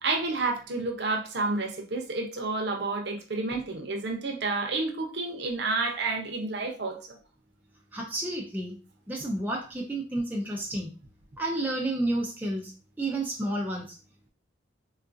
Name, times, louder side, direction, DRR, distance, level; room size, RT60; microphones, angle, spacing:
voice 1, 0.0-7.2, right 3 dB, 60° right, 2 dB, 0.7 m, -30 dB
voice 2, 7.9-8.8 9.1-10.9 11.4-12.7 13.0-14.0, right 1 dB, 10° right, -1 dB, 0.4 m, -30 dB
3.7 x 2.4 x 2.5 m, 0.35 s
head